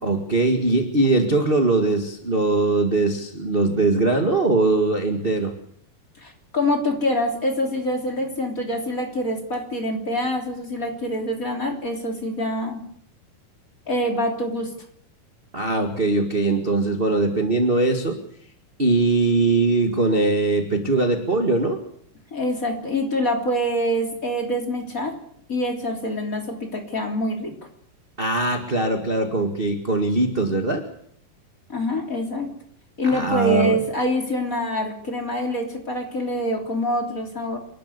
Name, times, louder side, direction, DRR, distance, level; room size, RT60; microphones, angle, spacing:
voice 1, 0.0-5.5 15.5-18.2 18.8-21.8 28.2-30.8 33.0-33.8, right 2 dB, 25° right, 4 dB, 1.1 m, -21 dB
voice 2, 6.2-12.8 13.9-14.7 22.3-25.1 25.5-27.5 31.7-32.5 33.0-37.6, equal, 25° left, 2 dB, 3.4 m, -25 dB
29.0 x 12.0 x 8.2 m, 0.68 s
omnidirectional pair, 4.2 m